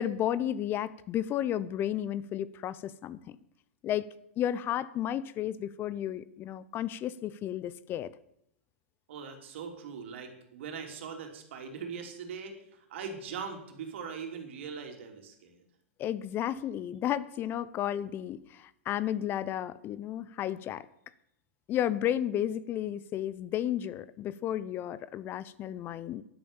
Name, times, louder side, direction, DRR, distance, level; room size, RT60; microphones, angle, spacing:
voice 1, 0.0-3.4 3.8-4.1 4.4-8.1 16.0-20.9 21.7-26.2, left 11 dB, 30° left, 18 dB, 0.7 m, -32 dB
voice 2, 9.1-15.6, right 6 dB, 65° right, 4 dB, 3.3 m, -41 dB
12.0 x 11.0 x 7.2 m, 0.76 s
hypercardioid pair, 115°, 7 cm